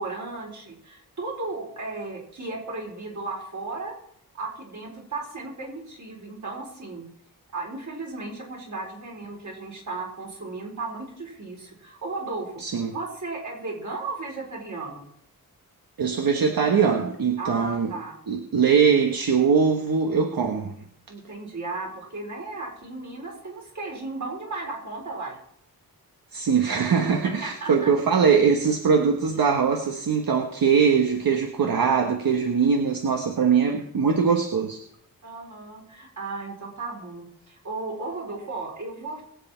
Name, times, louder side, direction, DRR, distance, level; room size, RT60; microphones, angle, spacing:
voice 1, 0.0-3.9 4.3-7.1 7.5-12.6 12.9-15.1 17.4-18.2 21.1-25.4 27.2-27.9 35.2-39.2, right 3 dB, 55° right, -1 dB, 4.5 m, -35 dB
voice 2, 12.6-12.9 16.0-17.9 18.3-20.7 26.3-34.8, right 6 dB, 75° right, 3 dB, 1.3 m, -22 dB
22.0 x 8.0 x 4.5 m, 0.68 s
wide cardioid pair, 135°, 36 cm